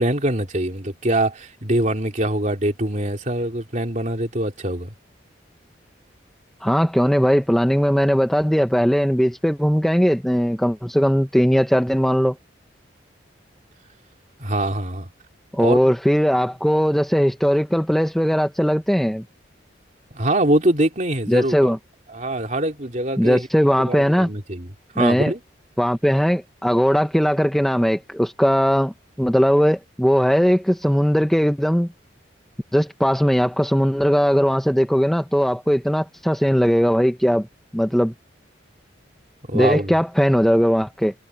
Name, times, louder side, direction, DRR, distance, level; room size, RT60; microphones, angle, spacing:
voice 1, 0.0-4.9 14.4-15.1 15.6-15.9 20.1-21.7 22.1-23.5 23.9-24.7 25.0-25.4 39.5-39.9, right 1 dB, 40° right, 3.2 m, -23 dB
voice 2, 6.6-12.4 15.5-19.2 21.3-21.8 23.2-24.3 25.0-25.3 25.8-31.9 32.7-37.5 37.7-38.1 39.5-41.1, equal, ahead, 0.7 m, -19 dB
head